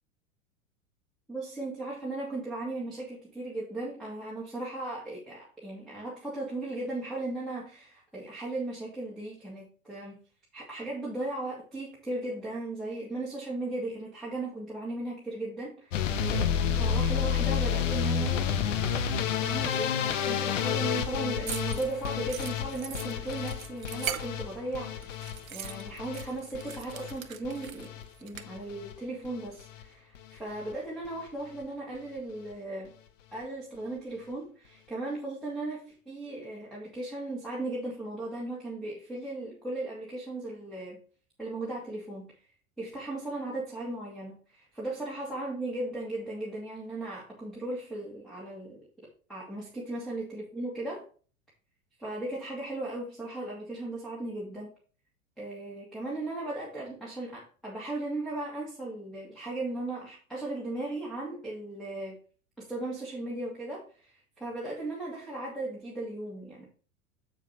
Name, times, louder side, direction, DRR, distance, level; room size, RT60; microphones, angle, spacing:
voice 1, 1.3-10.2 10.5-18.5 19.4-27.9 28.2-32.9 33.3-41.0 41.4-42.3 42.8-48.8 49.3-51.0 52.0-54.7 55.4-62.2 62.6-66.7, right 2 dB, ahead, 2.5 m, -37 dB
sound 1, 15.9-28.0 28.3-28.9 29.2-29.8 30.2-30.4 30.7-30.8 31.1-31.2, left 8 dB, 60° left, 1.0 m, -30 dB
sound 2, 21.5-24.7 25.0-28.4, right 9 dB, 70° right, 0.9 m, -40 dB
7.8 x 7.4 x 3.0 m
figure-of-eight pair, 90°, 42 cm